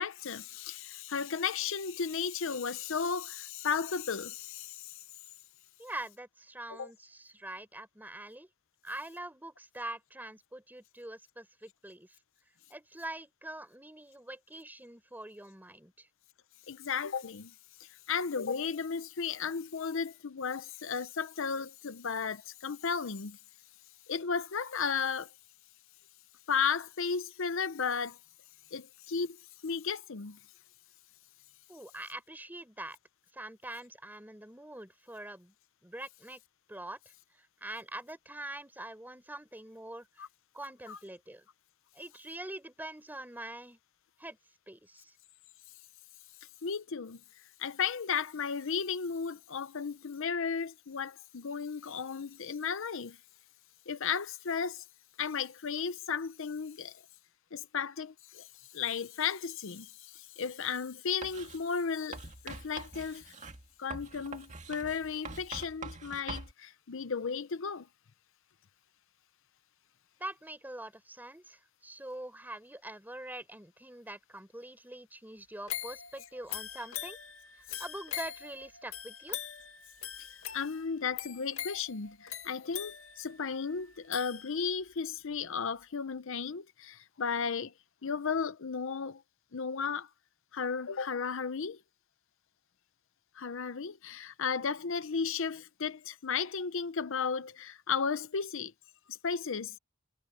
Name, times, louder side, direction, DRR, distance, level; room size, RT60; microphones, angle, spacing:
voice 1, 0.0-5.0 6.7-6.9 16.7-17.5 17.8-23.4 24.1-25.3 26.5-28.2 28.7-29.4 29.6-30.4 40.2-40.3 40.9-41.0 46.6-47.2 47.6-53.2 53.9-54.8 55.2-57.0 57.5-58.5 58.7-63.3 63.8-67.9 77.7-77.8 80.2-80.3 80.5-87.7 88.0-89.2 89.5-90.1 90.5-91.8 93.3-98.7 99.1-99.8, left 6 dB, 65° left, 0.7 m, -34 dB
voice 2, 5.8-8.5 8.8-12.2 12.7-16.1 31.7-33.0 33.3-35.5 35.8-36.4 36.7-37.0 37.3-40.2 40.5-41.5 41.9-43.8 44.2-44.4 44.7-45.1 70.2-77.2 77.5-79.4, right 1 dB, 10° right, 4.2 m, -44 dB
Writing, 61.2-61.6 62.1-66.5, right 3 dB, 35° right, 2.1 m, -44 dB
sound 1, 75.7-84.9 85.4-85.5, left 11 dB, 90° left, 2.0 m, -42 dB
head